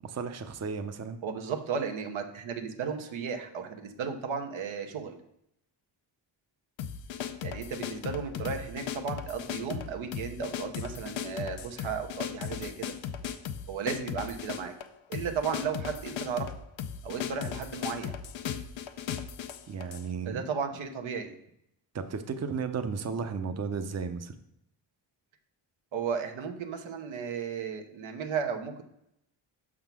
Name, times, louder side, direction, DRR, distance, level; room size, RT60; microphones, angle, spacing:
voice 1, 0.0-1.2 19.7-20.4 21.9-24.3, right 5 dB, 35° right, 8 dB, 0.6 m, -34 dB
voice 2, 1.2-5.2 7.4-12.9 13.7-14.7 15.1-16.5 17.0-18.2 20.2-21.4 25.9-28.8, right 6 dB, 90° right, 5 dB, 0.9 m, -34 dB
sound 1, 6.8-20.1, left 8 dB, 80° left, 0.6 m, -37 dB
5.7 x 3.7 x 5.9 m, 0.77 s
cardioid pair, 80°, 46 cm